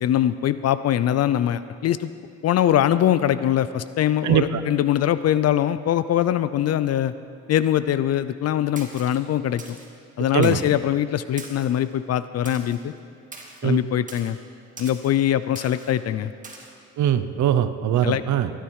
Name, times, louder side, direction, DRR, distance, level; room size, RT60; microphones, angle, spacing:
voice 1, 0.0-2.1 2.4-7.1 7.5-9.6 10.2-12.9 13.6-14.4 14.8-16.3 18.0-18.2, left 11 dB, 55° left, 14 dB, 0.5 m, -22 dB
voice 2, 4.2-4.6 10.3-10.6 13.6-13.8 17.0-18.5, right 10 dB, 70° right, 11 dB, 0.8 m, -21 dB
Splash splatter, 8.8-9.2 9.6-9.9 10.4-10.7 11.4-11.8 12.5-12.8 13.3-13.6 14.1-14.3 14.8-15.1 15.6-15.9 16.4-16.7, right 3 dB, 25° right, 2.0 m, -41 dB
18.5 x 10.5 x 4.8 m, 2.3 s
cardioid pair, 90°, 30 cm